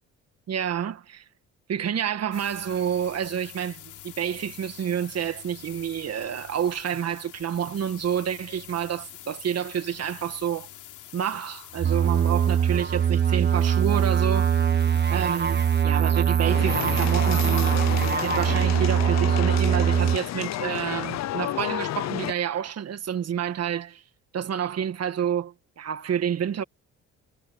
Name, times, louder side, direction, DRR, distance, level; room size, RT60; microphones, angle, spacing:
voice 1, 0.5-1.2 1.7-10.7 11.1-14.5 15.1-17.8 18.2-24.0 24.3-26.6, right 9 dB, 55° right, 1.7 m, -29 dB
sound 1, 2.3-15.9, left 12 dB, 80° left, 3.1 m, -46 dB
sound 2, 11.8-20.2, right 8 dB, 35° right, 1.0 m, -22 dB
sound 3, 16.4-22.3, left 14 dB, 60° left, 0.6 m, -31 dB
cardioid pair, 90°, 30 cm